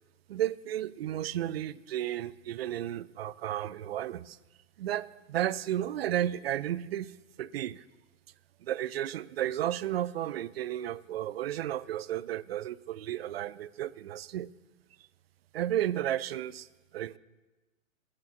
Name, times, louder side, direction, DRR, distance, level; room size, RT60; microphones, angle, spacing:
voice 1, 0.3-4.4 4.8-7.1 7.4-7.8 8.6-14.5 15.5-16.7 16.9-17.2, right 12 dB, 50° right, 18 dB, 0.5 m, -33 dB
14.0 x 6.7 x 7.2 m, 1.1 s
hypercardioid pair, 130°, 41 cm